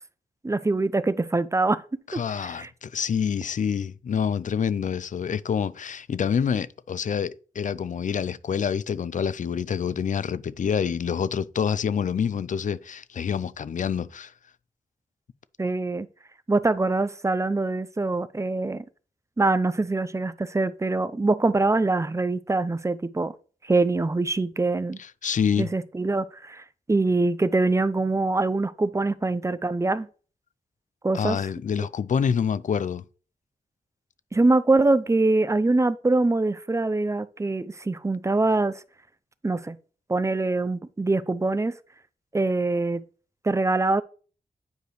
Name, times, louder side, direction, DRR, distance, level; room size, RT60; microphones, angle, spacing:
voice 1, 0.4-1.8 2.1-2.7 15.6-16.1 16.5-18.8 19.4-23.3 23.6-25.0 25.6-30.1 31.0-31.4 34.3-38.8 39.4-39.8 40.1-41.8 42.3-43.0 43.4-44.0, right 2 dB, 20° right, 0.5 m, -24 dB
voice 2, 2.1-14.3 25.0-25.7 31.1-33.0, left 7 dB, 60° left, 0.4 m, -27 dB
9.2 x 4.9 x 3.1 m
cardioid pair, 70°, 15 cm